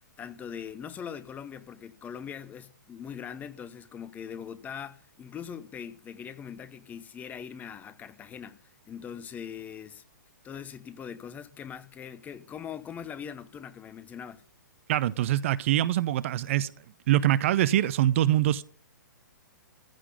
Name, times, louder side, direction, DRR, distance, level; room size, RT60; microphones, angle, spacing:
voice 1, 0.2-10.0 10.4-14.4, left 8 dB, 15° left, 1.0 m, -41 dB
voice 2, 14.9-16.7 17.1-18.6, right 13 dB, 40° right, 0.7 m, -24 dB
15.0 x 6.0 x 9.3 m
figure-of-eight pair, 115°, 10 cm